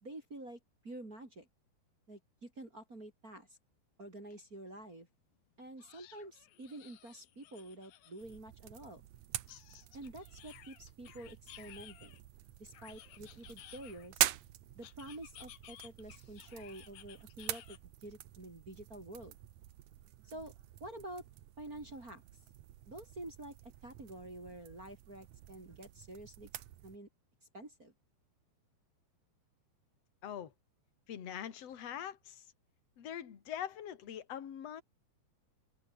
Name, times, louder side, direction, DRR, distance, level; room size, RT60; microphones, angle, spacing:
voice 1, 0.0-1.5 2.1-3.5 4.0-5.1 5.6-9.0 9.9-12.2 12.6-14.3 14.7-19.4 20.2-20.5 20.8-21.2 21.6-22.2 22.9-27.1 27.5-27.9, right 1 dB, 20° right, 3.7 m, -49 dB
sound 1, 4.3-4.4 4.8-4.9 5.8-8.4 9.5-12.2 12.7-14.3 14.8-17.8, left 13 dB, 65° left, 2.7 m, -56 dB
sound 2, 8.2-27.0, right 13 dB, 75° right, 1.7 m, -44 dB
voice 2, 30.2-30.5 31.1-32.5 33.0-34.8, left 9 dB, 45° left, 2.8 m, -43 dB
open air
omnidirectional pair, 5.0 m